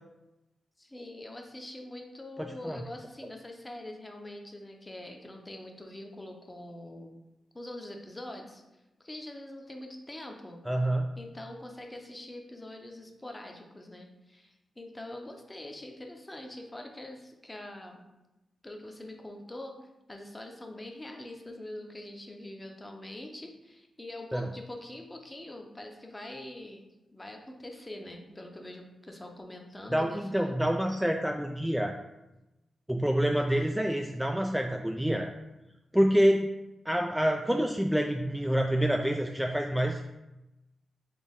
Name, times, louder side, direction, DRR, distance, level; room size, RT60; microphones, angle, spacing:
voice 1, 0.8-7.2 7.5-8.6 9.0-10.6 11.2-18.0 18.6-19.8 20.1-30.6, left 1 dB, 20° left, 3 dB, 0.8 m, -44 dB
voice 2, 2.4-2.8 10.7-11.1 24.3-24.5 29.9-31.9 32.9-35.3 35.9-36.5 36.9-40.0, equal, 5° right, 3 dB, 0.3 m, -27 dB
4.2 x 2.9 x 3.6 m, 0.98 s
cardioid pair, 65°, 0 cm